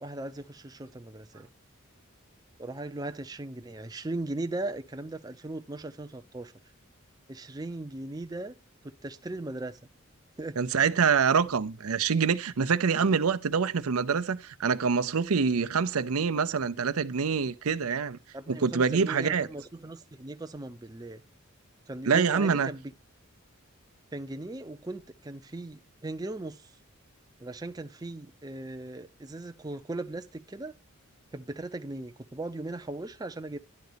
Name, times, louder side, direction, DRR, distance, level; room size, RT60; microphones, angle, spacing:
voice 1, 0.0-1.5 2.6-6.5 7.3-8.5 8.8-9.8 10.4-10.6 18.3-21.2 21.9-22.8 24.1-26.7 27.4-30.8 31.3-33.6, right 2 dB, 20° right, 0.5 m, -38 dB
voice 2, 10.6-18.2 18.5-19.5 22.1-22.7, right 5 dB, 90° right, 0.6 m, -25 dB
11.0 x 4.0 x 6.8 m
head